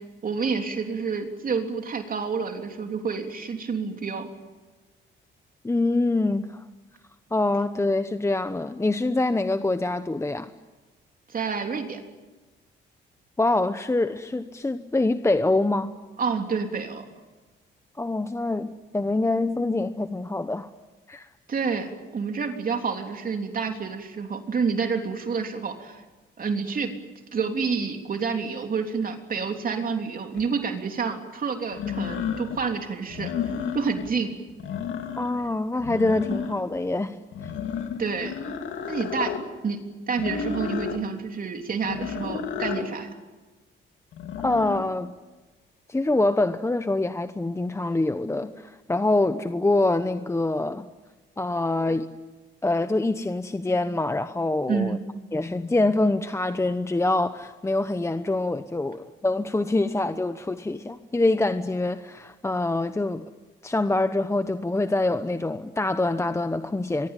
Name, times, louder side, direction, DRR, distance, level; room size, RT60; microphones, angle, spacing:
voice 1, 0.2-4.3 11.3-12.0 16.2-17.0 21.5-26.0 26.4-26.9 27.3-33.3 33.7-34.3 38.0-38.4 38.9-39.4 39.6-43.1 54.7-55.0, right 5 dB, 45° right, 4 dB, 3.3 m, -28 dB
voice 2, 5.6-6.6 7.3-10.5 13.4-15.9 18.0-20.7 21.1-21.3 35.2-37.2 44.4-45.1 45.9-50.9 51.4-52.1 52.6-55.0 55.3-63.3 63.6-67.1, left 2 dB, 15° left, 10 dB, 1.0 m, -25 dB
sound 1, 30.3-30.4 31.7-32.6 33.1-34.1 34.5-35.5 35.8-36.8 37.3-39.4 40.2-41.0 41.8-42.9 44.1-44.8, left 7 dB, 75° left, 3.0 m, -32 dB
23.5 x 23.5 x 9.1 m, 1.2 s
cardioid pair, 90°, 20 cm